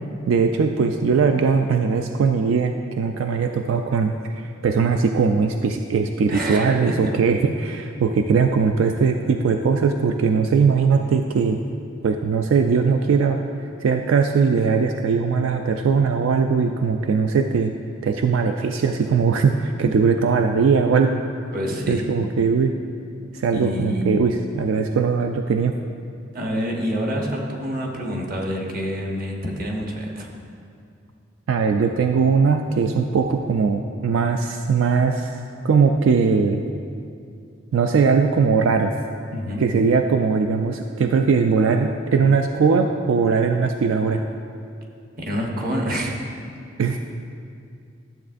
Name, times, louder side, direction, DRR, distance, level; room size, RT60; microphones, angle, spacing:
voice 1, 0.3-11.6 12.0-13.4 13.8-17.7 18.0-21.2 21.9-22.7 23.3-25.7 31.5-35.4 35.6-36.6 37.7-38.9 39.6-44.2 46.8-47.0, right 5 dB, 80° right, 5 dB, 0.3 m, -20 dB
voice 2, 6.3-6.9 21.5-22.1 23.5-24.1 26.3-30.3 39.3-39.6 45.2-46.2, equal, 45° right, 0 dB, 1.0 m, -27 dB
12.0 x 7.4 x 2.5 m, 2.4 s
head